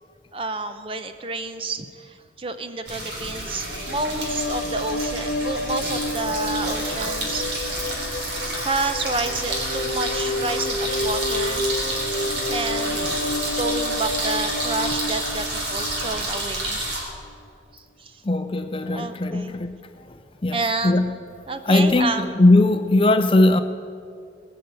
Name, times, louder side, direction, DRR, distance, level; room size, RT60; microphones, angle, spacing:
voice 1, 0.3-7.4 7.7-11.7 12.5-13.0 13.6-16.8 17.7-18.2 18.9-19.6 20.5-21.1 21.5-22.2, right 3 dB, 30° right, 9 dB, 0.7 m, -30 dB
sound 1, 2.9-17.0, right 1 dB, 75° right, 3.6 m, -29 dB
sound 2, 3.6-16.9, left 2 dB, 80° left, 0.8 m, -30 dB
voice 2, 18.2-21.1 21.7-23.6, left 2 dB, 30° left, 9 dB, 0.5 m, -19 dB
19.5 x 6.7 x 8.1 m, 2.3 s
head